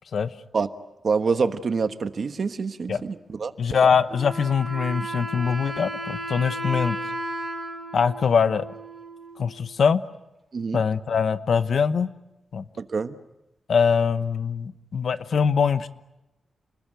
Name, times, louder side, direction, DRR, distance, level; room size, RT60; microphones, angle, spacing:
voice 1, 1.0-3.5 10.5-10.8 12.8-13.1, right 5 dB, 45° right, 10 dB, 1.2 m, -26 dB
voice 2, 3.6-7.0 7.9-8.6 9.4-10.0 10.7-12.1 12.5-12.6 13.7-15.9, left 6 dB, 60° left, 12 dB, 1.0 m, -22 dB
Wind instrument woodwind instrument, 4.1-9.6, right 1 dB, 15° right, 5.7 m, -34 dB
29.5 x 21.0 x 9.1 m, 0.96 s
wide cardioid pair, 170°, 0 cm